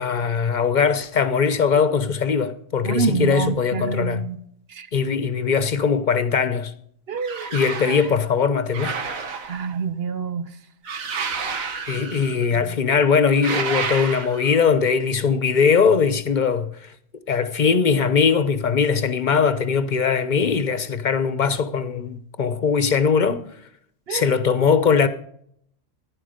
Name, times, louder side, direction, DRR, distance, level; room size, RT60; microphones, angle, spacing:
voice 1, 0.0-4.2 4.9-6.7 7.5-9.0 11.9-16.9 17.3-23.4 24.1-25.1, left 6 dB, 40° left, 0.9 m, -20 dB
voice 2, 2.8-4.4 4.7-4.9 7.1-7.5 9.5-10.5 12.5-12.8 24.1-24.3, right 5 dB, 55° right, 1.0 m, -27 dB
sound 1, 7.2-8.1 8.7-9.8 10.8-12.4 13.3-14.6, right 5 dB, 90° right, 1.7 m, -30 dB
15.5 x 10.5 x 5.1 m
omnidirectional pair, 1.4 m